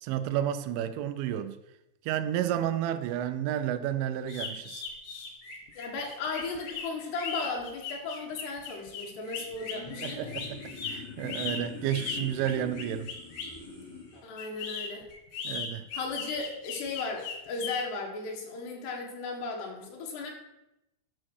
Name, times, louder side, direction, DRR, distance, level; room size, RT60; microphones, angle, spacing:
voice 1, 0.0-1.6 2.1-4.8 10.0-10.6 10.9-13.1 15.4-15.8, right 11 dB, 90° right, 11 dB, 3.1 m, -31 dB
sound 1, 4.3-13.6 14.4-17.8, left 6 dB, 90° left, 4.3 m, -38 dB
voice 2, 5.7-10.3 14.1-15.1 15.9-20.3, left 3 dB, 70° left, 1 dB, 3.8 m, -36 dB
sound 2, 9.3-14.2, left 5 dB, 20° left, 5.3 m, -44 dB
11.5 x 6.2 x 6.3 m, 0.92 s
omnidirectional pair, 5.2 m